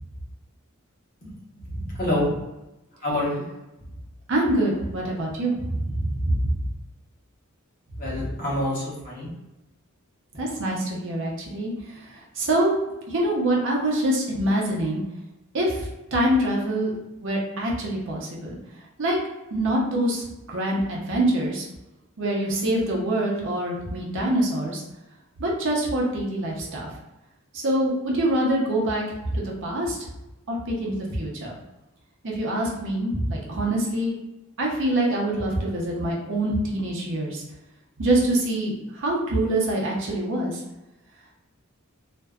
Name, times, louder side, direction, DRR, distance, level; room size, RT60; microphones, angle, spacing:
voice 1, 1.8-2.3 3.0-3.4 8.0-9.3, left 1 dB, 45° left, -6 dB, 0.9 m, -27 dB
voice 2, 4.3-6.5 10.4-11.7 12.4-12.8 13.1-15.0 15.5-18.6 19.0-19.2 19.5-21.7 22.2-24.8 25.4-26.9 27.5-30.0 30.5-31.5 32.2-34.1 34.6-37.4 38.0-40.6, right 1 dB, 60° right, -2 dB, 0.7 m, -25 dB
2.5 x 2.1 x 2.3 m, 0.99 s
head